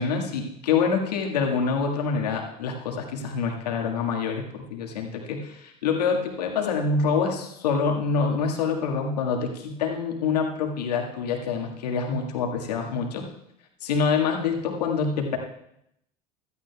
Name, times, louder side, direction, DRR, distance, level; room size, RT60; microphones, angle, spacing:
voice 1, 0.0-13.3 13.8-15.4, left 5 dB, 80° left, 1 dB, 1.8 m, -26 dB
15.5 x 13.0 x 2.3 m, 0.75 s
hypercardioid pair, 75°, 20 cm